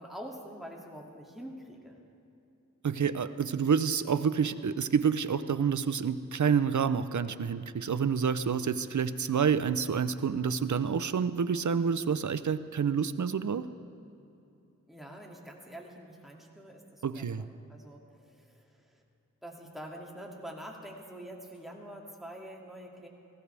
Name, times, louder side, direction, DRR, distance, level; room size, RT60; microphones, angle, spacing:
voice 1, 0.0-2.0 14.9-19.0 19.4-23.1, equal, ahead, -1 dB, 2.4 m, -46 dB
voice 2, 2.8-13.7 17.0-17.4, right 6 dB, 60° right, 13 dB, 0.6 m, -28 dB
18.5 x 15.5 x 3.4 m, 2.7 s
wide cardioid pair, 45°, 33 cm